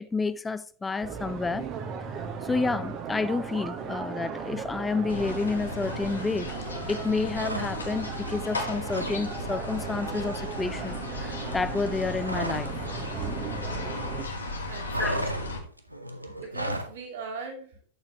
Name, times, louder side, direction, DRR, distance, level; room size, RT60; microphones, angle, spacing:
voice 1, 0.0-1.7 2.2-12.7 15.0-15.2, left 4 dB, 10° left, 0.5 m, -30 dB
sound 1, 1.0-14.2, right 6 dB, 35° right, 1.0 m, -37 dB
sound 2, 5.1-15.6, left 2 dB, 75° left, 1.6 m, -36 dB
sound 3, 7.3-8.1 8.4-9.2 9.5-9.7 10.0-12.8 13.0-14.1 14.4-17.0, right 1 dB, 85° right, 0.8 m, -35 dB
voice 2, 14.7-15.6 16.3-17.8, right 3 dB, 55° right, 2.6 m, -40 dB
9.6 x 6.8 x 2.9 m
figure-of-eight pair, 90°, 0 cm